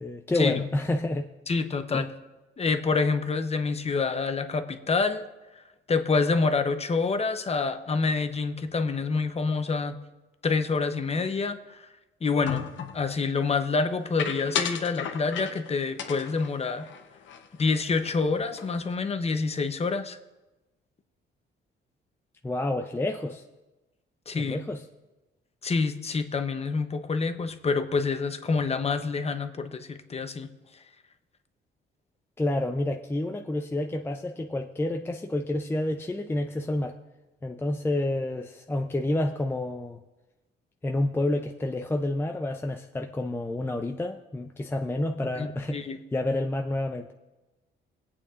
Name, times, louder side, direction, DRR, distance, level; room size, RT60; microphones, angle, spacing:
voice 1, 0.0-1.3 1.9-2.1 22.4-23.4 24.3-24.8 32.4-37.0 37.4-40.0 40.8-47.1, left 1 dB, 10° left, 3 dB, 0.5 m, -29 dB
voice 2, 1.5-2.1 2.6-5.3 5.9-10.0 10.4-11.8 12.2-12.7 12.9-16.9 17.6-20.2 24.3-24.6 25.6-30.5 45.3-46.0, left 4 dB, 30° left, 8 dB, 0.8 m, -27 dB
sound 1, 12.5-13.0 14.2-15.7 16.0-17.7 18.0-18.2 18.5-19.0, left 8 dB, 70° left, 0.9 m, -34 dB
25.5 x 8.5 x 2.5 m, 1.1 s
cardioid pair, 90°, 20 cm